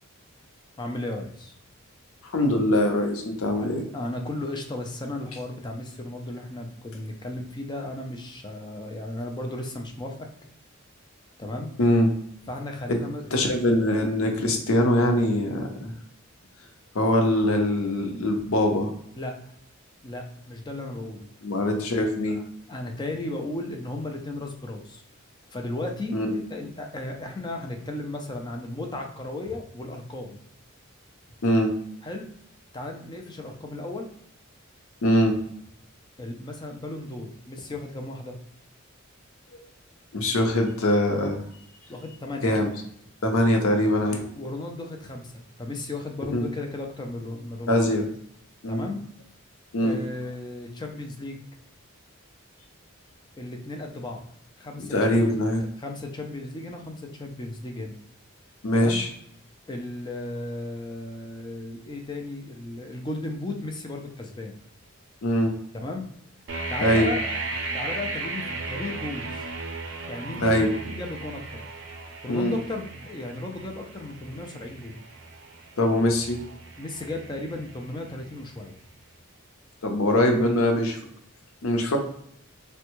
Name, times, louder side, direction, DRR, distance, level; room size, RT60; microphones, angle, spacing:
voice 1, 0.8-1.5 3.5-10.3 11.4-11.7 12.5-13.2 19.2-19.4 20.0-21.3 22.3-22.4 22.7-25.0 25.5-30.4 32.0-32.3 32.7-34.1 36.2-38.4 41.9-42.6 44.1-47.8 48.7-49.0 49.8-51.4 53.4-54.3 54.6-55.3 55.8-58.0 58.7-59.0 59.7-64.5 65.8-66.0 66.7-67.2 67.7-69.5 70.1-71.6 72.2-75.0 76.8-78.7, left 2 dB, 20° left, 3 dB, 0.4 m, -35 dB
voice 2, 2.2-3.8 11.8-12.1 12.9-13.0 13.3-15.9 16.9-18.9 21.4-22.4 26.1-26.4 31.4-31.7 35.0-35.4 40.1-41.4 42.4-42.7 43.2-44.2 46.3-46.5 47.7-48.1 48.6-48.8 49.7-50.0 54.8-55.6 58.6-59.1 65.2-65.5 66.8-67.1 70.3-70.7 72.3-72.6 75.8-76.4 79.8-81.0 81.6-82.0, left 1 dB, 85° left, 4 dB, 0.6 m, -22 dB
sound 1, 66.5-78.3, right 2 dB, 60° right, 0.5 m, -35 dB
3.4 x 2.2 x 3.0 m, 0.70 s
head